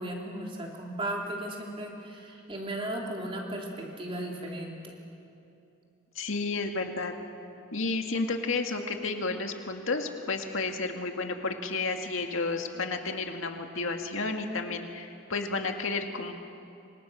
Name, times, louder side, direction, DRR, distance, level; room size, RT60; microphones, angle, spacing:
voice 1, 0.0-4.9, right 1 dB, 25° right, -1 dB, 3.5 m, -36 dB
voice 2, 6.2-7.1 7.7-16.3, left 3 dB, 85° left, 4 dB, 2.0 m, -31 dB
27.5 x 25.0 x 6.4 m, 2.7 s
head